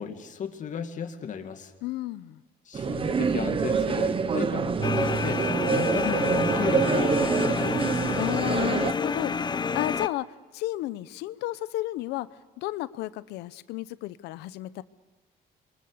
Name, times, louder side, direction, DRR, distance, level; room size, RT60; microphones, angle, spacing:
voice 1, 0.0-1.7 2.7-8.0, left 7 dB, 50° left, 6 dB, 2.2 m, -34 dB
voice 2, 1.8-2.4 8.2-12.3 12.6-14.8, left 16 dB, 90° left, 16 dB, 0.8 m, -33 dB
sound 1, 2.7-8.9, right 5 dB, 30° right, 1.1 m, -26 dB
sound 2, 4.8-10.1, left 5 dB, 25° left, 0.7 m, -29 dB
28.0 x 23.0 x 6.7 m, 1.2 s
cardioid pair, 110°, 17 cm